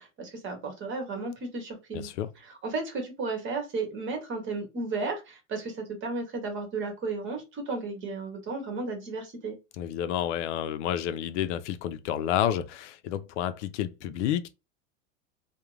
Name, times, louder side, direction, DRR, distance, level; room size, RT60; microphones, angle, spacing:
voice 1, 0.0-2.1 2.5-9.5, right 3 dB, 30° right, 1.0 m, -34 dB
voice 2, 1.9-2.3 9.8-14.5, left 10 dB, 75° left, 0.5 m, -30 dB
2.4 x 2.2 x 3.0 m
supercardioid pair, 140°, 36 cm